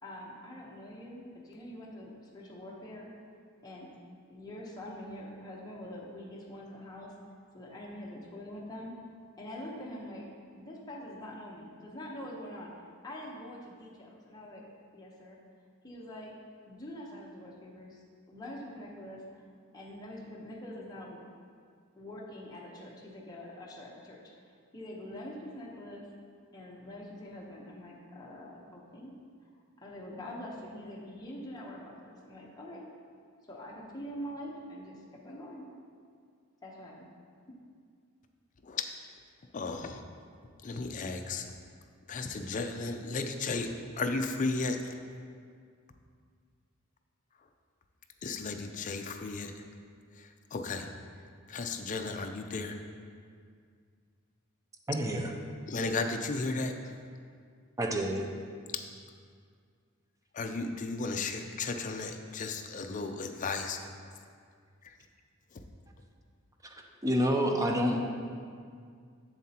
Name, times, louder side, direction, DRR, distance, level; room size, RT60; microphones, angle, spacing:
voice 1, 0.0-3.1 3.6-4.0 4.3-7.1 7.5-8.9 9.4-10.3 10.6-12.7 13.0-15.4 15.8-16.4 16.7-19.4 19.7-21.2 22.0-24.3 24.7-26.1 26.5-29.1 29.4-29.5 29.8-32.9 33.5-35.7 36.6-37.1, left 1 dB, 20° left, -4 dB, 0.9 m, -44 dB
voice 2, 39.5-40.0 40.6-41.5 42.1-45.0 48.2-49.5 50.2-50.9 51.5-52.8 55.7-57.0 58.7-58.8 60.3-63.9 64.8-64.9 65.5-65.6, left 3 dB, 35° left, 6 dB, 0.4 m, -34 dB
voice 3, 54.9-55.3 57.8-58.3 66.6-66.7 67.0-68.1, equal, 15° right, 2 dB, 0.5 m, -28 dB
7.4 x 7.2 x 2.9 m, 2.1 s
head